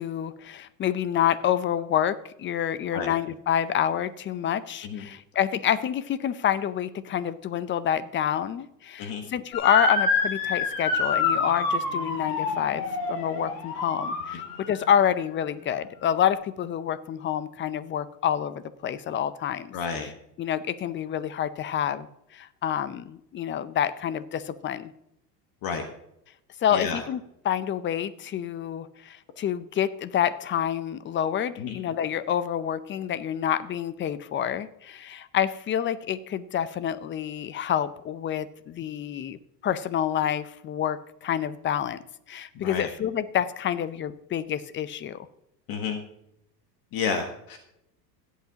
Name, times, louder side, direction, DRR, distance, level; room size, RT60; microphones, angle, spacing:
voice 1, 0.0-20.1 20.4-22.1 22.3-24.9 26.6-42.0 42.3-45.3, left 9 dB, 25° left, 16 dB, 0.5 m, -28 dB
Motor vehicle (road) / Siren, 9.5-14.8, left 4 dB, 70° left, 2.5 m, -27 dB
voice 2, 19.7-20.1 25.6-25.8 26.7-27.0 31.6-31.8 42.5-42.9 45.7-46.0 46.9-47.6, left 6 dB, 45° left, 6 dB, 1.4 m, -30 dB
16.5 x 8.3 x 2.9 m, 0.80 s
hypercardioid pair, 105°, 50 cm